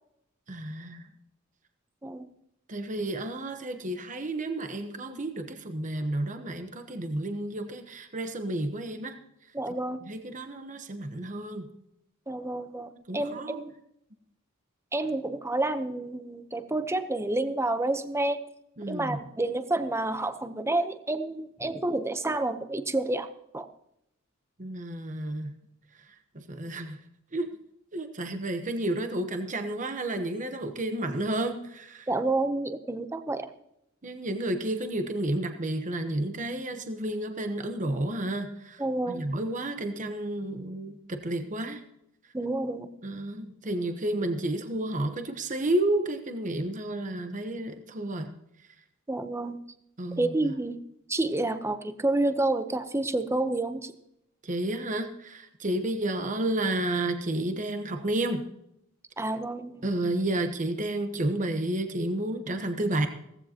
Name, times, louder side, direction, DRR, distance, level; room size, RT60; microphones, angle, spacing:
voice 1, 0.5-1.1 2.7-9.1 10.0-11.7 13.1-13.6 18.8-19.2 24.6-25.5 26.3-27.0 27.3-27.5 27.9-32.1 34.0-41.8 43.0-48.3 50.0-50.5 54.4-58.5 59.8-63.1, right 1 dB, 40° right, 7 dB, 1.0 m, -31 dB
voice 2, 2.0-2.3 9.5-10.0 12.3-13.7 14.9-18.4 18.9-23.3 23.5-23.7 32.1-33.5 38.8-39.2 42.3-42.9 49.1-49.6 50.2-50.8 51.1-53.9 59.2-59.9, right 2 dB, 15° right, 10 dB, 0.8 m, -29 dB
16.5 x 15.0 x 2.9 m, 0.79 s
head